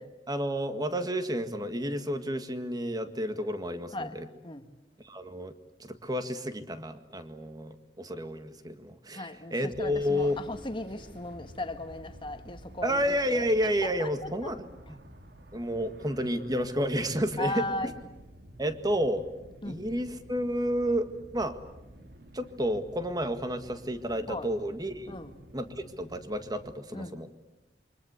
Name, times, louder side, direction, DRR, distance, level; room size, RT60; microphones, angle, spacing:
voice 1, 0.3-4.3 5.1-5.5 5.8-10.4 12.8-14.6 15.5-17.5 18.6-19.2 19.7-21.5 22.3-25.2 25.5-27.3, equal, 25° right, 1.8 m, -31 dB
voice 2, 9.1-13.5 13.8-14.5 17.4-18.0 19.6-19.9 24.3-24.5 25.1-25.4 26.9-27.2, left 2 dB, 30° left, 1.6 m, -37 dB
sound 1, 9.7-26.7, equal, 65° right, 2.1 m, -51 dB
28.0 x 24.5 x 8.2 m
head